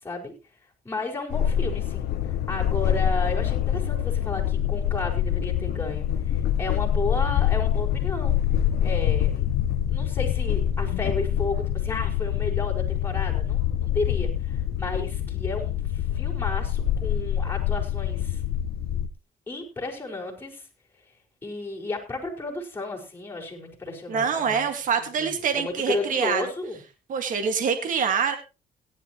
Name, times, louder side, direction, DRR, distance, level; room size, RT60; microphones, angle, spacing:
voice 1, 0.0-0.3 0.8-8.3 8.8-9.4 9.9-18.4 19.5-20.7 21.4-26.8, left 3 dB, 15° left, -2 dB, 5.5 m, -33 dB
sound 1, 1.3-19.1, left 10 dB, 75° left, 1.0 m, -25 dB
voice 2, 24.1-26.4 27.1-28.4, right 6 dB, 50° right, 7 dB, 2.0 m, -25 dB
17.5 x 11.5 x 3.1 m, 0.30 s
cardioid pair, 110°, 17 cm